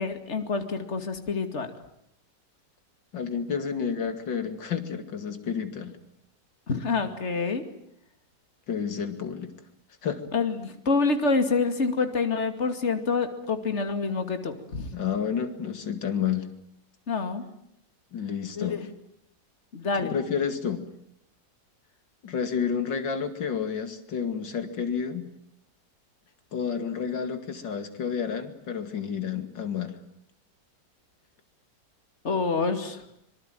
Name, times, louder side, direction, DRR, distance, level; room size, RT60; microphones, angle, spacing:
voice 1, 0.0-1.7 6.7-7.6 10.3-14.9 17.1-17.4 18.6-18.8 19.7-20.2 32.2-33.0, left 4 dB, 40° left, 8 dB, 2.7 m, -27 dB
voice 2, 3.1-6.0 8.7-9.5 10.0-10.2 14.9-16.5 18.1-18.9 20.1-20.9 22.2-25.3 26.5-29.9, left 7 dB, 85° left, 9 dB, 2.9 m, -30 dB
25.5 x 24.0 x 9.2 m, 0.72 s
omnidirectional pair, 1.9 m